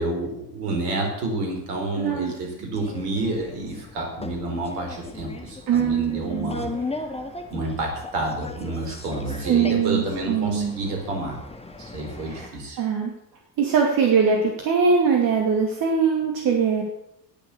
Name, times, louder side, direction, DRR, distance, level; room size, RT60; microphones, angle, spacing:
voice 1, 0.0-6.7 7.5-11.4 11.8-12.8, right 2 dB, 65° right, 2 dB, 4.7 m, -29 dB
voice 2, 2.0-2.3 5.7-6.6 9.4-10.8 12.3-12.5 12.8-13.1 13.6-16.8, right 6 dB, 45° right, 1 dB, 2.5 m, -22 dB
sound 1, 2.7-12.5, left 2 dB, 10° left, 2.2 m, -37 dB
19.0 x 7.3 x 6.8 m, 0.80 s
figure-of-eight pair, 65°, 49 cm